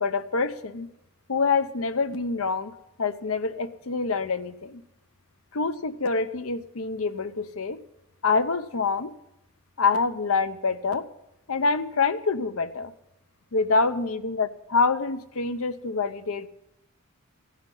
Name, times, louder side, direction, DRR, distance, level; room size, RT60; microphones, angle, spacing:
voice 1, 0.0-0.9 1.3-2.7 3.0-4.8 5.5-7.8 8.2-9.1 9.8-11.1 11.5-12.9 13.5-16.5, left 4 dB, 75° left, 10 dB, 0.8 m, -26 dB
15.5 x 5.8 x 9.8 m, 0.87 s
head